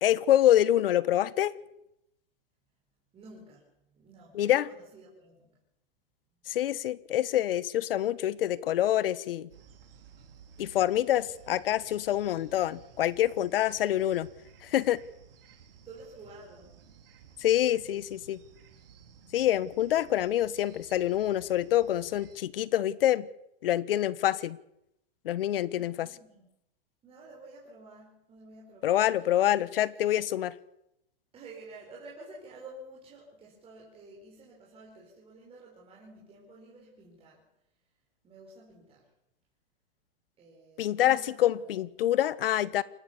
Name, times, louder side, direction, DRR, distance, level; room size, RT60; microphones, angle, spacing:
voice 1, 0.0-1.5 4.3-4.7 6.5-9.5 10.6-14.3 14.6-15.0 17.4-18.4 19.3-23.3 23.6-24.6 25.2-26.1 28.8-30.5 40.8-42.8, left 12 dB, 70° left, 19 dB, 1.2 m, -26 dB
voice 2, 3.1-5.6 15.7-16.8 19.1-19.5 25.7-26.5 27.0-30.1 31.3-37.5 38.2-39.1 40.4-41.7, right 2 dB, 20° right, -4 dB, 5.6 m, -51 dB
sound 1, 9.5-22.4, right 7 dB, 70° right, 3.9 m, -55 dB
28.0 x 13.0 x 7.1 m, 0.82 s
hypercardioid pair, 145°, 30 cm